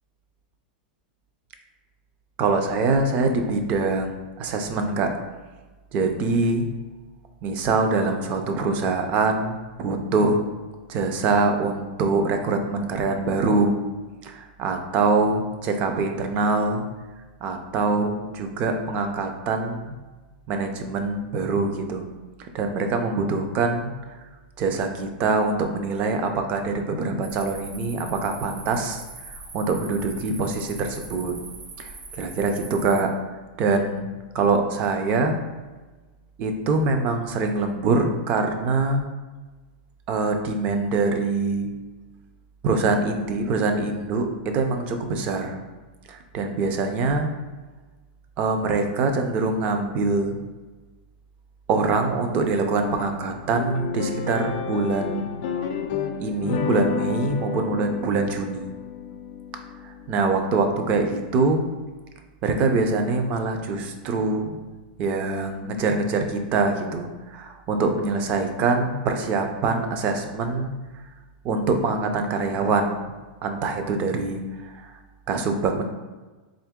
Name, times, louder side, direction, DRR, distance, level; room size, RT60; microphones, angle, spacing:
voice 1, 2.4-5.1 5.9-6.7 7.4-10.4 10.9-13.8 14.2-16.9 17.4-20.0 20.5-22.1 22.4-23.9 24.6-29.0 29.3-31.3 31.8-33.1 33.6-34.1 34.3-35.4 36.4-39.0 40.1-41.7 42.6-44.3 44.5-45.6 46.1-47.3 48.4-50.4 51.7-55.3 56.2-58.7 59.8-61.7 62.4-64.5 65.0-70.7 71.4-73.0 73.4-74.9 75.3-75.8, right 3 dB, 30° right, 5 dB, 0.4 m, -24 dB
sound 1, 27.2-33.0, right 3 dB, 85° right, 0.9 m, -41 dB
sound 2, 52.8-61.3, left 6 dB, 45° left, 0.3 m, -31 dB
3.7 x 2.7 x 3.6 m, 1.3 s
supercardioid pair, 165°, 5 cm